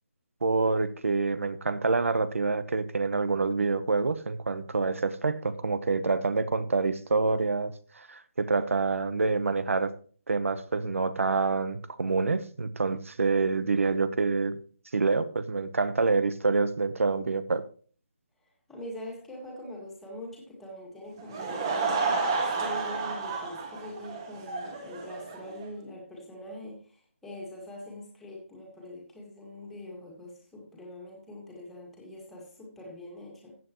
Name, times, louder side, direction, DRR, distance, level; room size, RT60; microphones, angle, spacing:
voice 1, 0.4-9.9 10.3-14.6 14.9-17.6, right 4 dB, 75° right, 14 dB, 1.1 m, -27 dB
voice 2, 18.7-33.5, left 1 dB, 5° left, -3 dB, 1.9 m, -43 dB
Laughter / Crowd, 21.2-25.7, right 4 dB, 20° right, 1.5 m, -31 dB
15.0 x 7.8 x 3.0 m, 0.42 s
hypercardioid pair, 175°, 7 cm